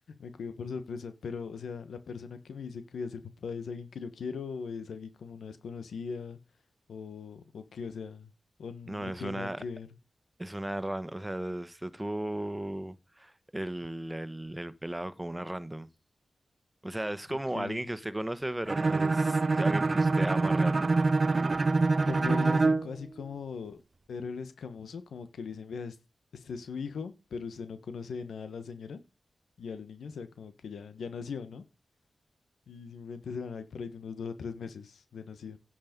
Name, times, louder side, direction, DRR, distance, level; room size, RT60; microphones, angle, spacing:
voice 1, 0.1-6.4 6.9-8.3 8.6-9.9 17.5-17.8 22.0-23.8 24.1-26.0 26.3-29.0 29.6-31.6 32.7-35.6, left 5 dB, 90° left, 1.3 m, -39 dB
voice 2, 8.9-9.6 10.4-15.9 16.8-20.9, right 1 dB, 15° right, 1.4 m, -35 dB
Bowed string instrument, 18.7-22.9, right 3 dB, 50° right, 0.6 m, -25 dB
10.5 x 7.8 x 5.3 m
cardioid pair, 45°, 0 cm